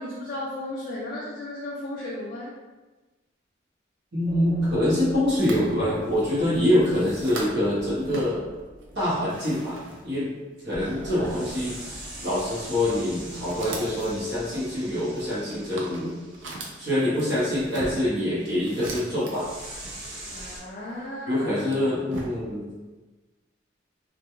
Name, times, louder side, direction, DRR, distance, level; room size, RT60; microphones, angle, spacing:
voice 1, 0.0-2.5 20.3-21.4, left 1 dB, 45° left, -5 dB, 0.3 m, -35 dB
voice 2, 4.1-8.4 8.9-10.3 10.6-16.2 16.8-19.5 21.3-22.7, left 1 dB, 60° right, -9 dB, 0.9 m, -25 dB
sound 1, 4.3-10.7 11.2-16.7 19.3-20.6, right 1 dB, 30° right, 0.7 m, -43 dB
sound 2, 5.4-7.7 8.0-10.3 10.7-11.6 12.2-12.4 13.0-19.6 19.8-21.0 21.5-22.6, right 2 dB, 80° right, 0.5 m, -40 dB
2.2 x 2.2 x 2.9 m, 1.2 s
head